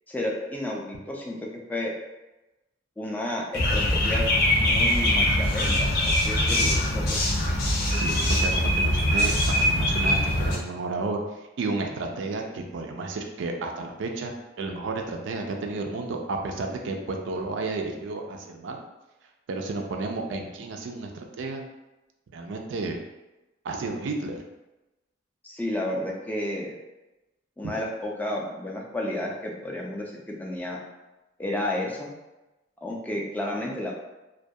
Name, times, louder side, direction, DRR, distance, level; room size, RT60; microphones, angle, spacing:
voice 1, 0.1-1.4 1.7-1.9 3.0-4.3 4.6-7.2 25.4-26.7 27.6-30.8 31.4-32.1 32.8-33.9, left 1 dB, 10° left, -1 dB, 0.3 m, -31 dB
sound 1, 3.5-10.6, left 1 dB, 60° left, 0.5 m, -23 dB
voice 2, 7.9-11.2 11.6-14.3 14.6-18.8 19.5-21.7 22.3-23.0 23.6-24.4 27.6-27.7, right 3 dB, 75° right, 3 dB, 0.3 m, -32 dB
2.2 x 2.2 x 2.6 m, 1.0 s
head